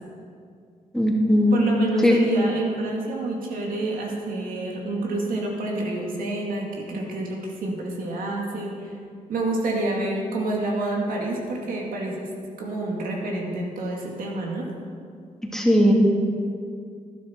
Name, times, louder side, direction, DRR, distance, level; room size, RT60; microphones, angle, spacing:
voice 1, 0.9-1.6 2.0-2.2 15.5-15.9, equal, 5° left, -2 dB, 2.5 m, -18 dB
voice 2, 1.5-8.9 9.3-14.7, right 2 dB, 80° right, -1 dB, 2.2 m, -28 dB
12.0 x 11.0 x 4.5 m, 2.3 s
cardioid pair, 65°, 15 cm